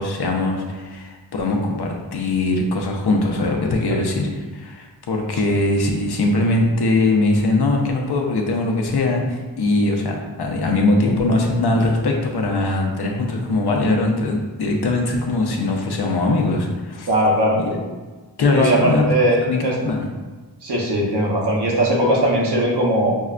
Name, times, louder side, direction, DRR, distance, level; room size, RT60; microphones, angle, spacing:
voice 1, 0.0-17.1 17.6-17.8 18.4-19.0 19.5-20.1, left 2 dB, 65° left, 1 dB, 0.6 m, -21 dB
voice 2, 17.1-17.6 18.5-19.7 20.6-23.1, right 1 dB, 70° right, -3 dB, 0.9 m, -19 dB
5.2 x 2.1 x 2.4 m, 1.3 s
wide cardioid pair, 45°, 42 cm